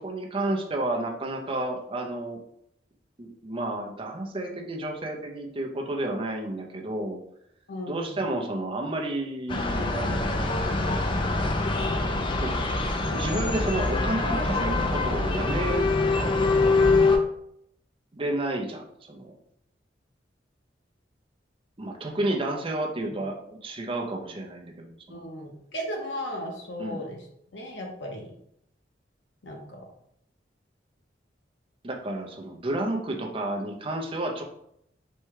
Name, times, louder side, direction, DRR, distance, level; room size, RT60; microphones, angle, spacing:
voice 1, 0.0-2.4 3.2-7.2 7.9-10.6 12.4-12.5 13.1-15.9 18.1-19.3 21.8-25.2 26.8-27.0 31.8-34.4, right 1 dB, 30° right, 2 dB, 0.6 m, -31 dB
voice 2, 7.7-8.3 22.2-22.3 25.1-27.2 27.5-28.3 29.4-29.8, equal, 85° left, 1 dB, 1.0 m, -36 dB
sound 1, 9.5-17.2, left 3 dB, 30° left, 0.4 m, -24 dB
4.3 x 2.3 x 4.6 m, 0.74 s
head